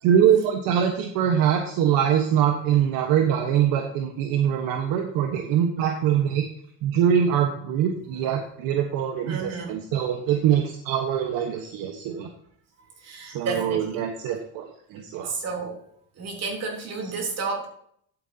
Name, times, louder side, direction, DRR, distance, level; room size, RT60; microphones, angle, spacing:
voice 1, 0.0-6.4 6.8-12.3 13.2-15.3, right 9 dB, 70° right, 4 dB, 1.3 m, -23 dB
voice 2, 9.2-9.7 13.0-13.9 15.2-15.8 16.2-17.7, right 4 dB, 45° right, 1 dB, 3.4 m, -31 dB
11.0 x 9.2 x 2.9 m, 0.66 s
cardioid pair, 130°, 36 cm